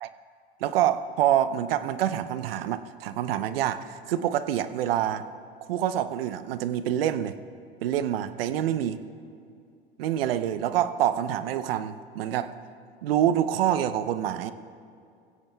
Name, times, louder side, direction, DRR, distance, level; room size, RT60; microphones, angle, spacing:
voice 1, 0.6-5.2 5.7-7.3 7.8-9.0 10.0-12.5 13.0-14.5, right 11 dB, 70° right, 12 dB, 0.7 m, -26 dB
20.5 x 16.0 x 2.3 m, 2.4 s
hypercardioid pair, 85°, 30 cm